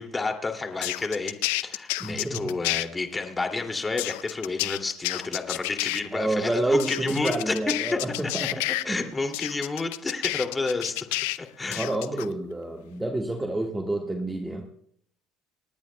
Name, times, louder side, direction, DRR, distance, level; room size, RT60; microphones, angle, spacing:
voice 1, 0.0-1.3 1.6-7.6 7.9-8.3 8.9-11.9, left 3 dB, 20° left, 4 dB, 2.5 m, -30 dB
sound 1, 0.8-2.8 4.0-6.0 6.8-8.8 9.3-11.4 11.7-12.3, left 20 dB, 85° left, 0.5 m, -29 dB
voice 2, 2.0-2.5 6.1-9.1 11.7-14.6, right 1 dB, 10° right, 3 dB, 1.6 m, -28 dB
29.0 x 10.5 x 2.2 m, 0.67 s
supercardioid pair, 90°, 0 cm